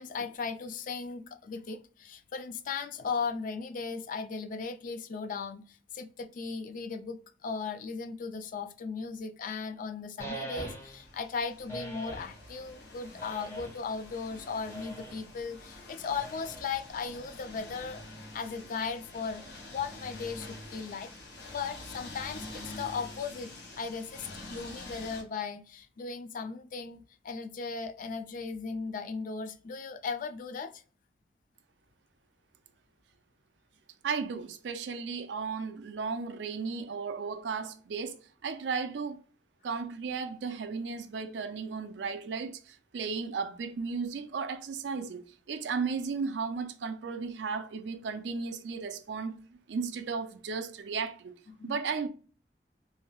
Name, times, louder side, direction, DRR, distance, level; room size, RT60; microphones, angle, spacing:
voice 1, 0.0-18.0 18.3-19.4 19.7-21.1 21.5-30.8 51.5-51.8, left 5 dB, 50° left, 0.3 m, -37 dB
sound 1, 10.2-11.1 11.7-12.4 13.2-13.9 14.7-15.3 16.2-16.9, right 1 dB, 15° left, 0.9 m, -42 dB
sound 2, 10.8-25.2, left 2 dB, 75° left, 1.3 m, -47 dB
voice 2, 34.0-39.2 39.6-49.4 49.7-52.1, right 5 dB, 75° right, 0.4 m, -35 dB
3.1 x 2.6 x 2.2 m
head